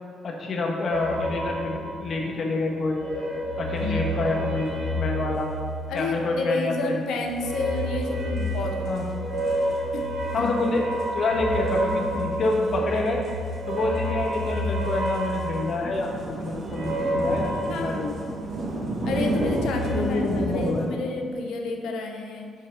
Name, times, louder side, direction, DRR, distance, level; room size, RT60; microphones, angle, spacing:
voice 1, 0.2-3.0 3.6-5.5 5.9-7.0 8.8-9.0 10.3-10.8 11.1-13.2 13.7-18.1 19.9-20.9, left 2 dB, 55° left, 0 dB, 1.3 m, -27 dB
sound 1, 0.9-2.5 2.9-6.4 7.3-18.6 18.9-20.0, equal, 30° right, 1.5 m, -30 dB
voice 2, 5.9-9.1 9.9-10.1 10.4-10.5 17.7-18.2 19.0-20.2 20.5-22.5, left 3 dB, 85° left, 2 dB, 0.8 m, -30 dB
sound 2, 6.0-6.1 7.8-7.9 8.0-8.1 8.4-8.5 8.9-9.1 9.4-10.0 10.3-10.6 10.9-11.1 11.7-20.9, right 1 dB, 60° right, 1.7 m, -32 dB
6.2 x 5.3 x 5.0 m, 2.1 s
cardioid pair, 90°, 0 cm